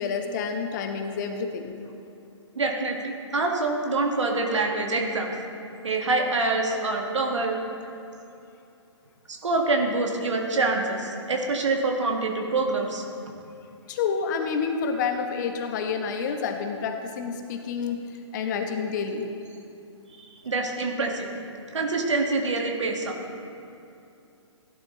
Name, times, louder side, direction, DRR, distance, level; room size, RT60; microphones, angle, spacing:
voice 1, 0.0-1.7 13.9-18.0 18.3-19.3, left 5 dB, 40° left, 5 dB, 1.1 m, -29 dB
voice 2, 2.6-5.3 5.8-7.6 9.3-13.0 20.2-21.3 21.7-23.2, right 3 dB, 70° right, 2 dB, 1.9 m, -26 dB
16.0 x 11.5 x 3.2 m, 2.7 s
figure-of-eight pair, 130°, 16 cm